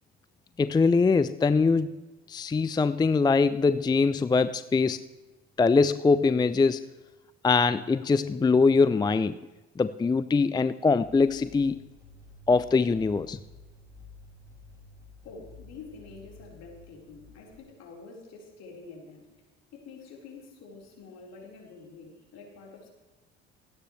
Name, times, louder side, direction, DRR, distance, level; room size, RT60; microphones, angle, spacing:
voice 1, 0.6-1.9 2.3-5.0 5.6-6.9 7.4-9.4 9.8-11.8 12.5-13.4, left 4 dB, 15° left, 14 dB, 0.5 m, -23 dB
sound 1, 11.0-17.6, left 3 dB, 10° right, 5.8 m, -51 dB
voice 2, 15.2-19.3 19.7-22.9, left 4 dB, 60° left, -1 dB, 4.4 m, -47 dB
28.0 x 9.6 x 3.3 m, 1.1 s
hypercardioid pair, 60°, 30 cm